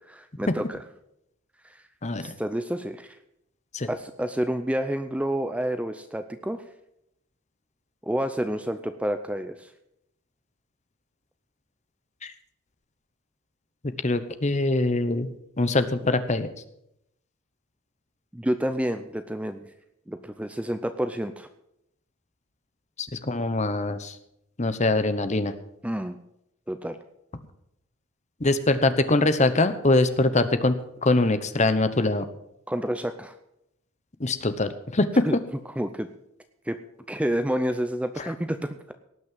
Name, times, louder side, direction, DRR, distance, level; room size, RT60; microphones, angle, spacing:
voice 1, 0.1-0.8 1.6-1.8 2.2-3.2 3.9-6.6 8.0-9.7 18.3-19.7 20.1-21.5 25.8-26.2 26.7-27.0 32.7-33.3 35.1-35.4 35.8-36.1 36.7-36.8 37.1-38.9, equal, 5° right, 9 dB, 0.5 m, -29 dB
voice 2, 2.0-2.3 3.7-3.9 12.2-12.3 14.0-16.5 23.0-24.2 24.6-25.5 28.4-30.7 31.0-32.3 34.2-35.3 38.2-38.3, left 2 dB, 30° left, 11 dB, 0.9 m, -23 dB
18.0 x 6.2 x 7.5 m, 0.79 s
head